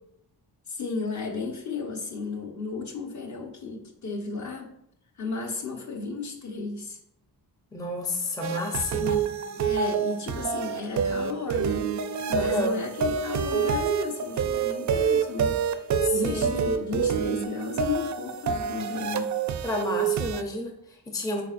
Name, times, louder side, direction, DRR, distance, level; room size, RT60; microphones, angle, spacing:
voice 1, 0.7-4.7 5.2-7.0 9.0-11.9 12.3-15.6 16.1-19.3, left 4 dB, 45° left, 2 dB, 1.0 m, -34 dB
voice 2, 7.7-9.2 12.3-12.8 16.0-16.5 19.6-21.4, left 1 dB, 10° left, 2 dB, 0.5 m, -30 dB
sound 1, 8.4-20.4, right 6 dB, 50° right, 0.4 m, -27 dB
8.7 x 4.4 x 2.5 m, 0.74 s
wide cardioid pair, 170°, 39 cm